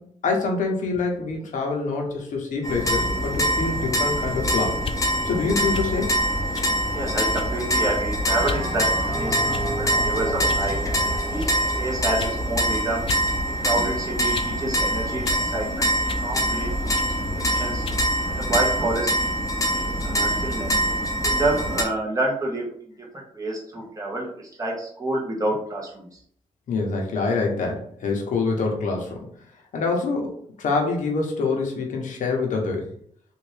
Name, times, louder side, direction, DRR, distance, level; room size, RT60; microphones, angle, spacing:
voice 1, 0.0-4.8 5.2-6.1 26.7-29.3 29.7-32.9, left 4 dB, 75° left, 1 dB, 0.9 m, -26 dB
sound 1, 2.6-21.8, right 1 dB, 25° left, 0.8 m, -24 dB
sound 2, 4.8-5.0 5.7-5.9 6.5-6.7 7.3-7.7 8.4-8.7 9.5-9.9 10.5-10.7 11.4-11.6 12.2-12.4 13.1-13.3 13.6-14.6 15.2-15.4 16.1-16.3 17.0-17.2 17.8-18.1, left 4 dB, 45° left, 0.4 m, -34 dB
voice 2, 6.9-9.3 9.8-10.8 11.3-13.0 13.6-15.9 16.2-16.7 17.4-17.8 18.3-19.3 20.0-20.8 21.2-22.6 23.0-24.3 24.6-26.1, right 2 dB, 25° right, -3 dB, 1.2 m, -28 dB
Bell, 8.3-12.9, right 1 dB, ahead, 1.5 m, -33 dB
3.5 x 2.5 x 3.3 m, 0.62 s
cardioid pair, 100°, 13 cm